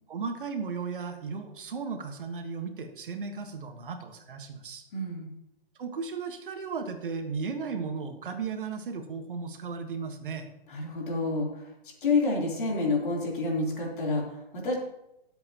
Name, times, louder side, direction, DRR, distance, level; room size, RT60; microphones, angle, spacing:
voice 1, 0.1-4.8 5.8-10.5, right 5 dB, 55° right, 6 dB, 1.4 m, -35 dB
voice 2, 4.9-5.3 10.7-11.7 12.0-14.7, left 3 dB, 55° left, -2 dB, 3.5 m, -28 dB
18.5 x 7.8 x 2.9 m, 0.89 s
hypercardioid pair, 170°, 31 cm